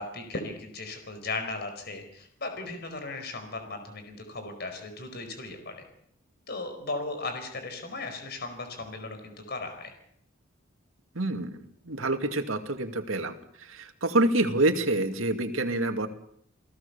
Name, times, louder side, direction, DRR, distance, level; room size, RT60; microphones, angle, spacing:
voice 1, 0.0-5.8 6.5-9.9, left 3 dB, 50° left, 6 dB, 4.8 m, -37 dB
voice 2, 11.1-16.1, right 2 dB, 90° right, 6 dB, 2.4 m, -27 dB
29.0 x 17.5 x 7.0 m, 0.69 s
head